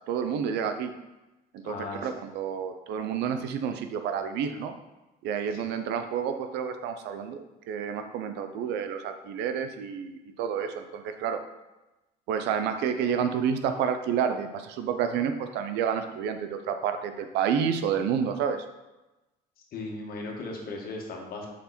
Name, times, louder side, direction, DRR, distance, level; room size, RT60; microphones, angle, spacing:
voice 1, 0.1-0.9 1.6-1.7 2.0-4.7 5.2-11.4 12.3-18.6, right 7 dB, 90° right, 8 dB, 0.7 m, -29 dB
voice 2, 1.6-2.1 5.5-5.6 19.7-21.5, left 2 dB, 60° left, 0 dB, 1.6 m, -37 dB
6.0 x 4.4 x 4.2 m, 1.0 s
cardioid pair, 110°, 17 cm